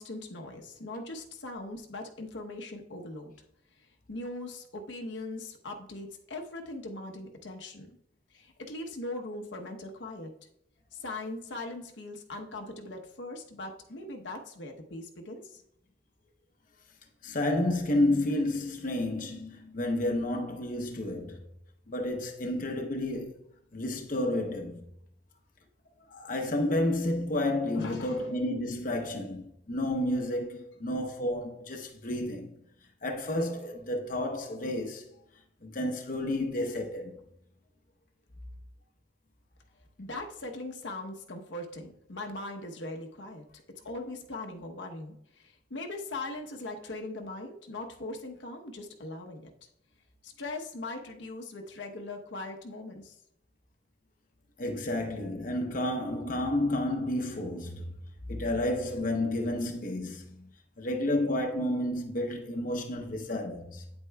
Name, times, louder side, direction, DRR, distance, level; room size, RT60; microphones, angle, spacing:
voice 1, 0.0-3.3 4.1-8.0 8.3-10.3 10.9-15.6 27.7-28.3 40.0-43.4 43.7-49.5 50.2-53.1, left 2 dB, 80° left, 0.9 m, -40 dB
voice 2, 17.2-21.4 21.9-23.4 23.7-24.8 26.1-32.6 33.0-35.1 35.6-37.2 54.6-57.9 58.3-63.8, left 1 dB, 45° left, 0.8 m, -31 dB
8.9 x 8.0 x 2.2 m
head